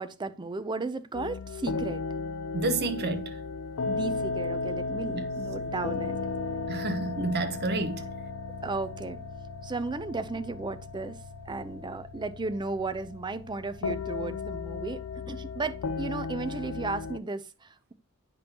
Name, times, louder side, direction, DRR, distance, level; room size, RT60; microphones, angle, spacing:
voice 1, 0.0-2.0 3.9-6.2 8.6-9.2 9.6-11.2 11.5-17.9, right 3 dB, 20° right, 0.5 m, -35 dB
sound 1, 1.1-17.2, left 4 dB, 65° left, 0.4 m, -35 dB
voice 2, 2.5-3.4 5.1-5.2 6.7-8.0, right 2 dB, 50° right, 1.0 m, -29 dB
8.5 x 5.2 x 2.8 m
head